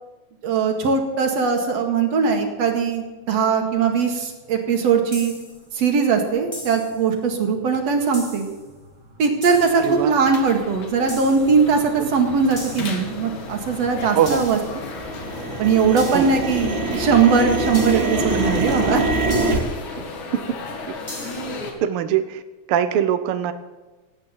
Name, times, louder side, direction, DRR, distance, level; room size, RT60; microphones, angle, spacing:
voice 1, 0.4-5.3 5.7-8.5 9.2-14.6 15.6-19.0, right 5 dB, 60° right, 4 dB, 2.9 m, -20 dB
sound 1, 5.1-5.6 6.5-7.0 8.1-8.6 9.4-9.9 11.1-11.6 12.6-13.1 14.2-14.8 16.0-16.5 17.7-18.3 19.3-19.8 21.1-21.6, left 1 dB, 10° left, 2.1 m, -37 dB
sound 2, 8.7-8.8 9.5-9.6 10.2-10.5 11.0-11.1 11.3-11.9 12.1-14.5 14.8-19.6, right 2 dB, 40° right, 2.7 m, -25 dB
sound 3, 9.5-21.7, left 3 dB, 70° left, 3.3 m, -34 dB
voice 2, 9.8-10.1 12.0-12.1 14.1-14.4 16.1-16.3 20.9-21.0 21.2-21.3 21.8-22.4 22.7-23.5, right 10 dB, 75° right, 10 dB, 1.3 m, -22 dB
17.0 x 8.9 x 7.4 m, 1.2 s
omnidirectional pair, 3.5 m